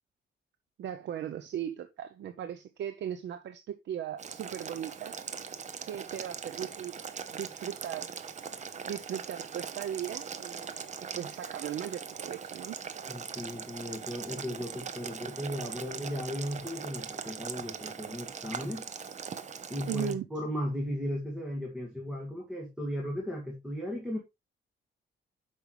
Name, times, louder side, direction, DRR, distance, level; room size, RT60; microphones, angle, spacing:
voice 1, 0.8-5.1 5.9-7.0 7.3-8.2 8.9-12.8 19.9-20.3, right 10 dB, 70° right, 0.7 m, -38 dB
Boiling, 4.2-20.1, right 6 dB, 40° right, 0.8 m, -41 dB
voice 2, 13.1-18.8 19.7-24.2, equal, 5° right, 1.9 m, -36 dB
8.4 x 5.6 x 3.1 m
cardioid pair, 140°, 19 cm